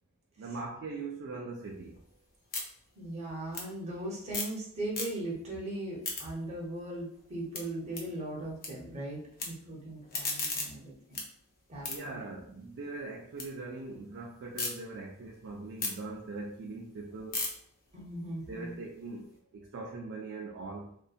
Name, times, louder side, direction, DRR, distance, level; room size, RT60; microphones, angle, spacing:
voice 1, 0.4-2.0 11.9-17.5 18.5-19.3 19.5-20.9, right 3 dB, 55° right, -1 dB, 0.3 m, -41 dB
sound 1, 1.6-4.6 4.9-5.5 5.8-8.7 9.0-9.5 9.9-13.5 13.9-14.7 15.2-19.3, left 3 dB, 40° left, 0.5 m, -40 dB
voice 2, 2.9-11.2 11.7-12.2 17.9-18.7, right 1 dB, 30° right, -3 dB, 0.7 m, -39 dB
2.6 x 2.2 x 2.4 m, 0.66 s
head